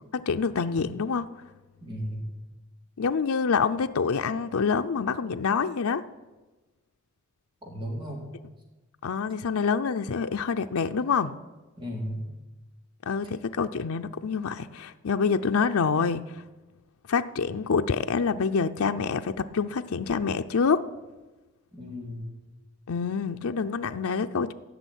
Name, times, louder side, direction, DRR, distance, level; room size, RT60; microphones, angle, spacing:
voice 1, 0.1-1.3 3.0-6.0 9.0-11.3 13.1-16.2 17.1-20.9 22.9-24.5, left 5 dB, 90° left, 7 dB, 0.5 m, -26 dB
voice 2, 1.8-2.2 7.6-8.2 11.8-12.2 21.7-22.3, equal, 25° right, -1 dB, 3.5 m, -35 dB
16.0 x 6.3 x 10.0 m, 1.2 s
head